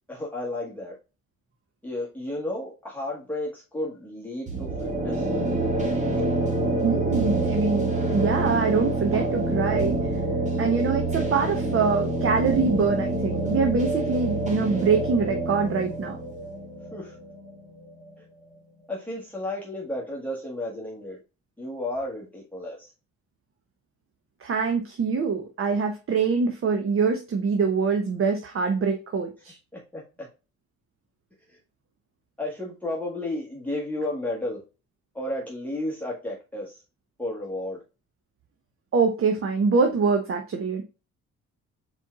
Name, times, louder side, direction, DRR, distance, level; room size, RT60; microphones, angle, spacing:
voice 1, 0.1-0.9 1.8-5.3 6.1-6.2 16.9-17.2 18.2-18.3 18.9-21.2 21.6-22.9 29.7-30.3 31.5-31.6 32.4-34.6 35.1-36.8 37.2-37.8, left 1 dB, 5° left, -4 dB, 1.4 m, -33 dB
sound 1, 4.5-18.1, right 2 dB, 25° right, 2.0 m, -27 dB
voice 2, 6.8-10.0 10.6-16.2 24.4-29.6 38.9-40.8, right 5 dB, 45° right, 4 dB, 0.9 m, -24 dB
4.4 x 4.4 x 2.4 m, 0.30 s
cardioid pair, 90°, 30 cm